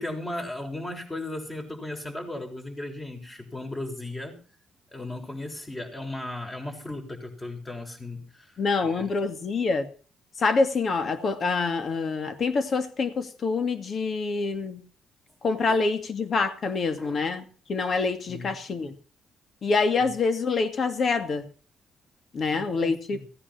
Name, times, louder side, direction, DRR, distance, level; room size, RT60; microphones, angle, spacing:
voice 1, 0.0-4.4 4.9-8.5 8.8-9.1 15.7-15.8 17.0-17.2 18.3-18.5 22.5-23.2, left 1 dB, 20° left, 3 dB, 7.0 m, -36 dB
voice 2, 8.6-9.9 10.4-14.8 15.4-17.4 17.7-18.9 19.6-21.5 22.3-23.2, left 4 dB, 50° left, 8 dB, 2.4 m, -26 dB
18.0 x 10.0 x 6.3 m, 0.39 s
cardioid pair, 90°, 0 cm